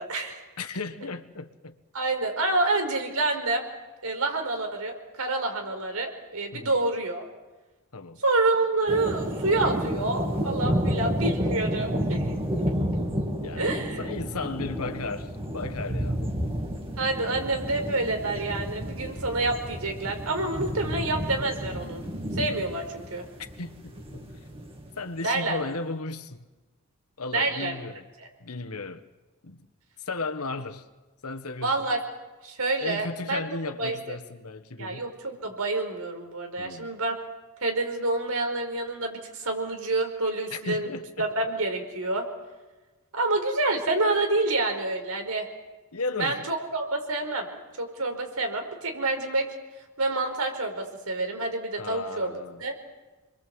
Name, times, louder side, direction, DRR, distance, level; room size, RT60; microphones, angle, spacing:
voice 1, 0.0-0.4 1.9-3.6 4.0-7.2 8.2-12.4 13.5-14.0 17.0-22.0 22.3-23.2 25.2-25.6 27.3-27.7 31.6-32.0 32.4-33.4 33.8-34.2 34.8-37.2 37.6-40.9 41.2-42.3 43.1-45.5 46.2-47.5 47.8-49.5 50.0-52.3 52.6-52.7, right 2 dB, 80° right, 4.9 m, -28 dB
voice 2, 0.6-1.8 6.5-6.8 7.9-8.2 13.4-16.3 23.6-24.3 25.0-26.5 27.2-28.1 28.4-29.1 29.4-29.7 30.0-30.9 31.2-31.9 32.8-35.1 36.6-36.9 40.5-41.3 45.9-46.4 51.8-52.6, left 3 dB, 85° left, 1.6 m, -35 dB
sound 1, 8.9-25.0, equal, 25° right, 2.6 m, -31 dB
28.0 x 22.5 x 8.0 m
head